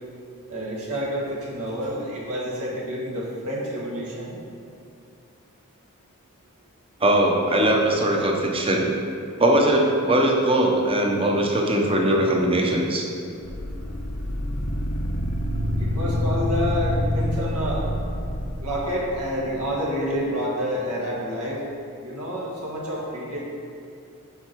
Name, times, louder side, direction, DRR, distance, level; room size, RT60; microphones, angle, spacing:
voice 1, 0.5-4.4 15.8-17.9 18.6-21.6 22.0-23.4, equal, 85° right, -5 dB, 1.8 m, -28 dB
voice 2, 7.0-8.9 9.4-13.1, right 1 dB, 25° right, 0 dB, 0.8 m, -20 dB
sound 1, 13.4-19.6, left 1 dB, 75° left, 0.8 m, -27 dB
8.0 x 4.7 x 4.6 m, 2.5 s
head